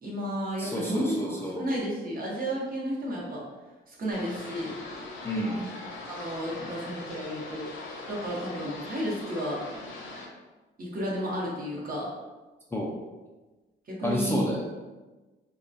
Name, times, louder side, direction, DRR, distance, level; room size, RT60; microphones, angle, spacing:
voice 1, 0.0-1.2 1.6-3.4 3.9-4.7 6.1-7.6 8.1-9.6 10.8-12.1 13.9-14.4, equal, 45° right, -4 dB, 0.8 m, -32 dB
voice 2, 0.6-1.6 5.2-5.6 12.7-13.0 14.0-14.7, equal, 10° left, -3 dB, 0.3 m, -30 dB
sound 1, 4.1-10.3, left 2 dB, 80° left, 0.6 m, -41 dB
2.2 x 2.2 x 2.5 m, 1.2 s
cardioid pair, 90°, 20 cm